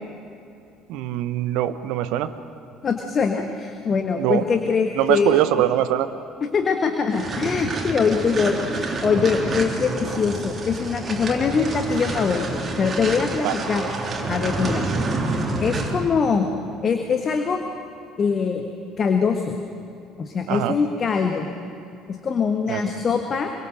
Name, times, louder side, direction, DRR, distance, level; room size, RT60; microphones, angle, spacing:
voice 1, 0.9-2.3 4.2-4.5 5.0-6.1 13.4-13.5 20.5-20.8 22.7-22.8, right 13 dB, 60° right, 12 dB, 1.1 m, -22 dB
voice 2, 2.8-5.3 6.5-13.8 14.3-14.9 15.6-16.4 16.8-17.6 18.2-18.6 19.0-19.5 20.2-21.5 22.2-23.5, left 5 dB, 35° left, 5 dB, 1.7 m, -23 dB
sound 1, 7.1-16.1, right 3 dB, 30° right, 3.4 m, -28 dB
26.5 x 24.0 x 6.5 m, 2.6 s
figure-of-eight pair, 55°, 0 cm